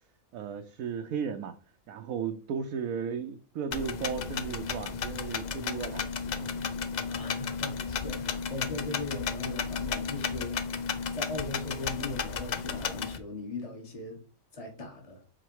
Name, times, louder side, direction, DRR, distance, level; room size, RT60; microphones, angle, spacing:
voice 1, 0.3-1.6 1.9-6.1 6.4-6.7, right 7 dB, 75° right, 1.1 m, -35 dB
sound 1, 3.7-13.2, left 6 dB, 70° left, 0.4 m, -33 dB
voice 2, 7.1-10.7 11.1-14.2 14.5-15.2, left 2 dB, 25° left, 1.5 m, -39 dB
5.0 x 4.1 x 4.6 m
omnidirectional pair, 1.5 m